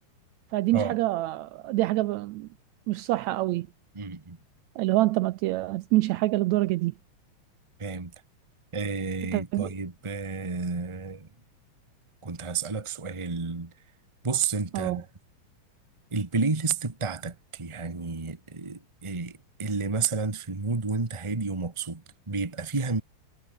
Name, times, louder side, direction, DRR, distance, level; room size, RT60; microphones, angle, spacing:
voice 1, 0.5-2.5 2.9-3.7 4.8-6.9 9.3-9.7 14.7-15.0, right 17 dB, 80° right, 1.7 m, -26 dB
voice 2, 3.9-4.4 7.8-8.1 8.7-11.3 12.2-13.7 14.2-15.0 16.1-23.0, right 4 dB, 15° right, 1.0 m, -31 dB
omnidirectional pair, 3.6 m